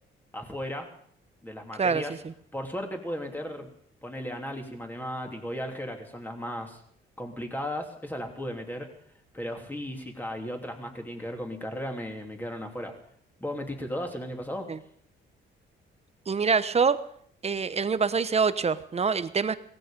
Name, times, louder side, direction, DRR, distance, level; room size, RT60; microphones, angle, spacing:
voice 1, 0.3-0.9 1.4-2.1 2.5-3.7 4.0-6.8 7.2-8.9 9.3-12.9 13.4-14.7, equal, 10° left, 3 dB, 3.3 m, -35 dB
voice 2, 16.3-17.0 17.4-19.5, right 5 dB, 30° right, 14 dB, 0.9 m, -25 dB
17.5 x 15.5 x 5.3 m, 0.62 s
cardioid pair, 90°, 20 cm